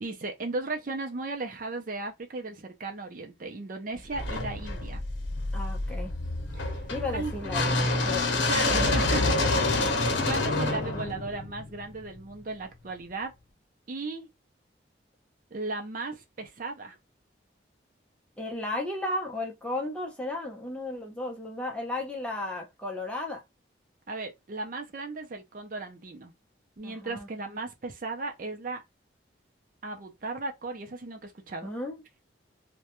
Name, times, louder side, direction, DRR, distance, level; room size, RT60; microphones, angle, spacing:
voice 1, 0.0-5.0 6.6-6.8 7.1-7.3 8.5-9.8 10.3-13.3 13.9-14.3 15.5-17.0 24.1-26.3 26.8-28.8 29.8-31.7, right 3 dB, 45° right, 0.5 m, -36 dB
sound 1, 4.1-12.2, left 2 dB, 75° left, 0.7 m, -27 dB
voice 2, 5.5-6.1 6.9-8.3 8.7-9.1 18.4-23.4 26.8-27.3 31.6-32.2, left 2 dB, 5° left, 0.6 m, -34 dB
2.2 x 2.1 x 2.9 m
head